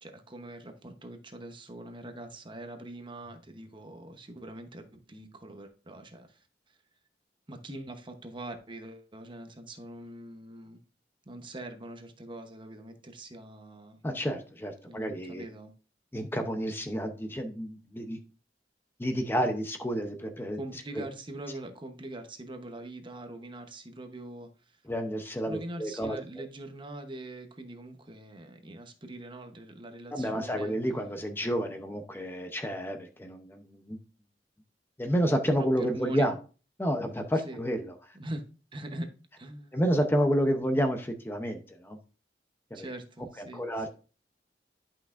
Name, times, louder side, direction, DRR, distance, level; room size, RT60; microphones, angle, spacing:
voice 1, 0.0-6.8 7.5-10.8 11.3-14.0 14.9-15.7 20.6-24.8 25.5-30.7 35.6-36.3 37.4-37.6 38.2-38.4 38.7-39.1 39.4-39.8 42.7-43.9, right 1 dB, 30° right, 1.0 m, -43 dB
voice 2, 14.0-15.4 16.1-18.2 19.0-20.6 20.9-21.0 24.9-26.2 30.1-34.0 35.0-36.3 36.8-37.9 39.7-42.0 42.7-42.9 43.4-43.9, equal, 15° left, 0.7 m, -30 dB
10.5 x 5.8 x 2.5 m
head